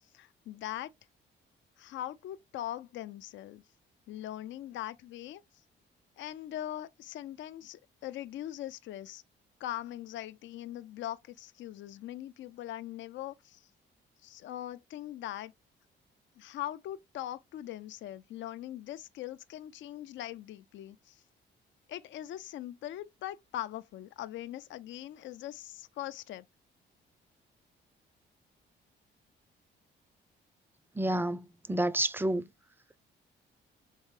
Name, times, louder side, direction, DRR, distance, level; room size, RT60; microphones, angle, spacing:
voice 1, 0.1-0.9 1.8-3.6 4.1-5.4 6.2-9.2 9.6-13.7 14.2-15.5 16.4-21.2 21.9-26.5, left 13 dB, 70° left, 0.4 m, -41 dB
voice 2, 30.9-32.5, right 1 dB, 10° right, 0.5 m, -30 dB
4.5 x 3.6 x 3.1 m
cardioid pair, 90°, 20 cm